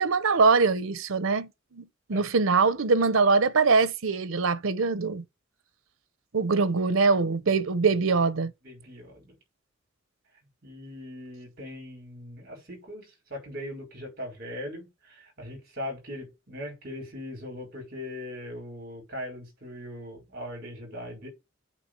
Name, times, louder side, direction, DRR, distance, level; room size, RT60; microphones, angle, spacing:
voice 1, 0.0-1.5 1.8-5.2 6.3-8.5, right 4 dB, 85° right, 0.8 m, -23 dB
voice 2, 8.6-9.4 10.6-21.3, left 1 dB, 50° right, 5.3 m, -40 dB
8.5 x 3.5 x 6.7 m
head